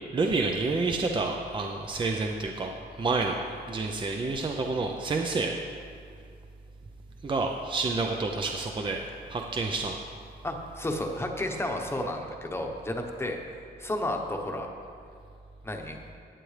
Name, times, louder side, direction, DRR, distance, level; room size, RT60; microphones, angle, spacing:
voice 1, 0.1-5.5 7.2-10.0, right 3 dB, 30° right, 2 dB, 0.6 m, -29 dB
voice 2, 10.4-13.4 13.8-14.7 15.6-16.0, left 1 dB, 15° left, 2 dB, 1.0 m, -32 dB
15.0 x 8.9 x 3.3 m, 2.3 s
wide cardioid pair, 130°, 18 cm